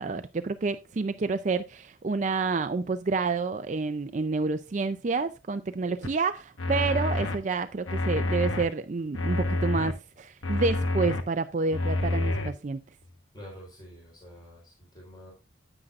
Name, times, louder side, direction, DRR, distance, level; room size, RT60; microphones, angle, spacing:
voice 1, 0.0-12.8, right 4 dB, 35° right, 0.4 m, -29 dB
sound 1, 6.0-6.1 6.6-7.4 7.9-8.6 9.1-9.9 10.4-11.2 11.7-12.5, left 2 dB, 80° left, 1.2 m, -28 dB
voice 2, 13.3-15.3, equal, 20° left, 3.8 m, -47 dB
9.8 x 9.0 x 2.4 m
head